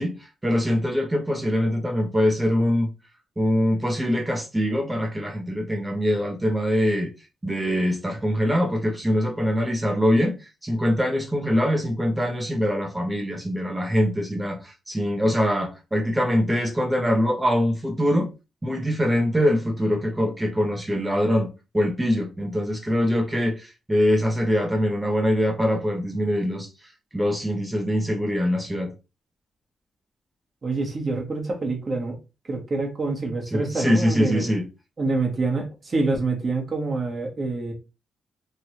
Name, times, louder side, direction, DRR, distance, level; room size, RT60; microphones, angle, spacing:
voice 1, 0.0-2.9 3.4-7.1 7.4-18.3 18.6-21.5 21.7-28.9 33.5-34.6, equal, 15° right, 0.7 m, -23 dB
voice 2, 30.6-32.2 32.5-34.5 35.0-37.7, right 3 dB, 40° right, 1.2 m, -26 dB
3.1 x 2.6 x 2.9 m
cardioid pair, 100°, 0 cm